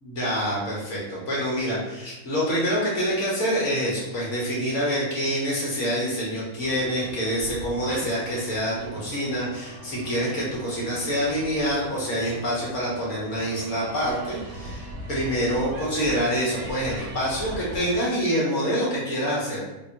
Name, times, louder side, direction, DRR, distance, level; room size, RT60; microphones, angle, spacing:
voice 1, 0.0-19.6, equal, 60° left, -5 dB, 1.1 m, -26 dB
sound 1, 6.6-18.0, right 1 dB, 75° right, 1.1 m, -40 dB
2.9 x 2.1 x 2.5 m, 0.99 s
omnidirectional pair, 1.5 m